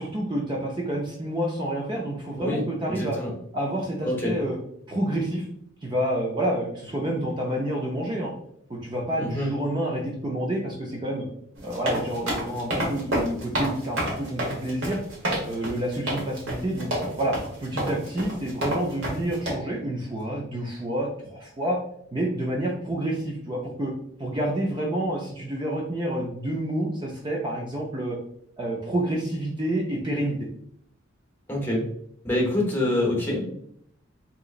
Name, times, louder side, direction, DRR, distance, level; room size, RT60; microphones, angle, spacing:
voice 1, 0.0-3.2 3.5-4.6 4.9-5.5 5.8-8.3 8.7-11.3 11.6-15.0 15.5-16.9 17.2-21.8 22.1-23.9 24.2-28.2 28.6-30.4, right 1 dB, 25° right, -2 dB, 0.5 m, -28 dB
voice 2, 2.4-3.3 4.0-4.3 9.2-9.5 31.5-31.8 32.2-33.4, left 1 dB, 10° left, -3 dB, 1.0 m, -26 dB
sound 1, 11.6-19.5, right 1 dB, 75° right, 1.3 m, -28 dB
3.7 x 2.9 x 2.4 m, 0.68 s
head